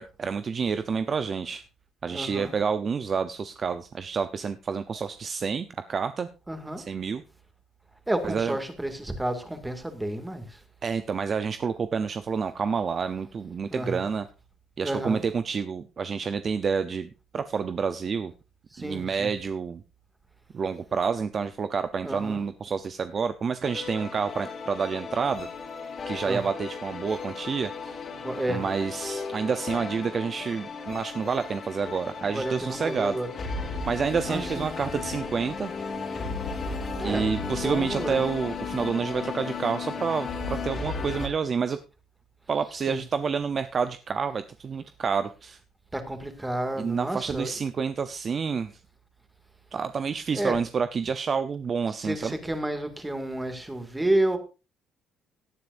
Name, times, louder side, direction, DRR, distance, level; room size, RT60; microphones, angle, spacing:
voice 1, 0.0-1.6 2.0-6.3 6.8-7.2 8.2-8.5 10.8-14.3 14.8-18.3 18.8-19.8 20.5-25.5 26.1-28.0 28.5-33.2 33.9-35.7 37.0-41.8 42.5-45.6 46.8-48.7 49.7-52.4, right 6 dB, 35° right, 0.6 m, -29 dB
voice 2, 2.1-2.5 6.5-6.8 8.1-10.4 13.7-14.1 14.8-15.2 18.7-19.3 22.0-22.4 26.2-26.4 28.2-28.6 32.2-33.3 34.3-34.7 36.6-36.7 37.0-38.2 42.9-43.0 45.9-47.5 50.3-50.6 52.0-54.4, right 1 dB, 10° right, 2.2 m, -30 dB
sound 1, 23.6-41.3, left 4 dB, 40° left, 3.0 m, -35 dB
17.5 x 9.7 x 2.6 m
cardioid pair, 120°, 0 cm